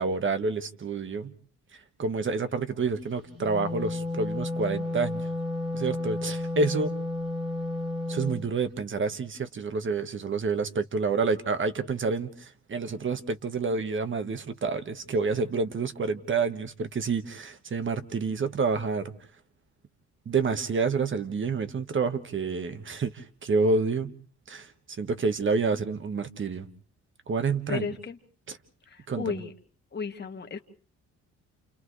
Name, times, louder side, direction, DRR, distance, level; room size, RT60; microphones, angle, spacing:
voice 1, 0.0-1.3 2.0-5.2 5.7-6.9 8.1-19.1 20.2-24.1 24.5-24.7 25.0-26.7 27.3-27.9 28.5-28.6 29.1-29.4, right 4 dB, 40° right, 1.6 m, -28 dB
Wind instrument woodwind instrument, 3.3-8.4, left 2 dB, 85° right, 2.3 m, -32 dB
voice 2, 27.7-28.2 28.9-29.5 29.9-30.6, left 5 dB, 35° left, 1.9 m, -33 dB
29.5 x 29.0 x 3.3 m
cardioid pair, 90°, 30 cm